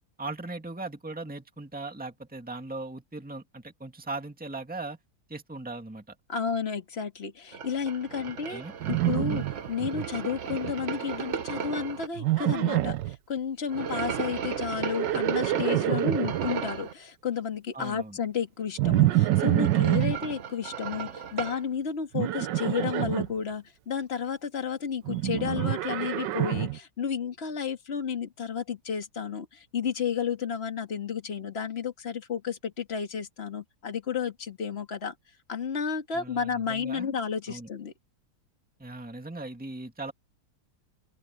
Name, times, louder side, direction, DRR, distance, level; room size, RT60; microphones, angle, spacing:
voice 1, 0.2-5.0 5.3-6.2 8.2-8.7 15.9-16.2 17.7-18.2 36.1-37.2 37.5-37.7 38.8-40.1, right 2 dB, 5° right, 1.9 m, -39 dB
voice 2, 6.3-8.6 8.9-35.1 35.5-37.9, left 7 dB, 35° left, 2.1 m, -32 dB
sound 1, 7.5-12.1 13.7-16.9 19.0-21.6, right 7 dB, 50° right, 1.1 m, -35 dB
Livestock farm animals working animals, 8.8-10.1 10.3-10.9 12.2-13.2 14.7-16.5 18.8-20.2 22.1-23.3 25.1-26.8, right 14 dB, 80° right, 1.4 m, -26 dB
open air
omnidirectional pair, 1.9 m